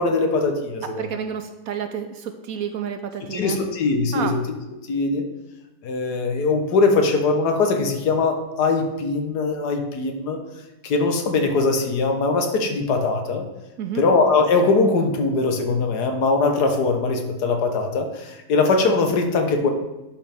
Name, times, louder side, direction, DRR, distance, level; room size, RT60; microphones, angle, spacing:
voice 1, 0.0-1.0 3.3-4.4 4.9-5.2 5.8-10.4 10.8-13.4 14.0-19.7, left 3 dB, 75° left, 4 dB, 1.6 m, -21 dB
voice 2, 1.0-3.6 4.1-4.4 13.8-14.0, right 8 dB, 70° right, 7 dB, 0.9 m, -30 dB
11.0 x 5.8 x 3.5 m, 0.99 s
omnidirectional pair, 1.8 m